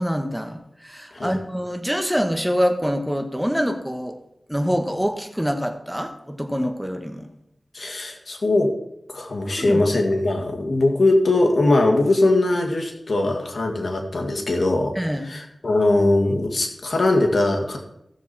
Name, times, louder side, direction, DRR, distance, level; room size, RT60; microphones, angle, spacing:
voice 1, 0.0-4.2 4.5-7.3 9.5-9.8 14.9-15.3, equal, 5° right, 5 dB, 1.6 m, -25 dB
voice 2, 7.7-8.7 9.1-15.0 15.2-17.8, left 2 dB, 70° left, 3 dB, 2.0 m, -21 dB
15.5 x 7.1 x 4.4 m, 0.79 s
cardioid pair, 40°, 0 cm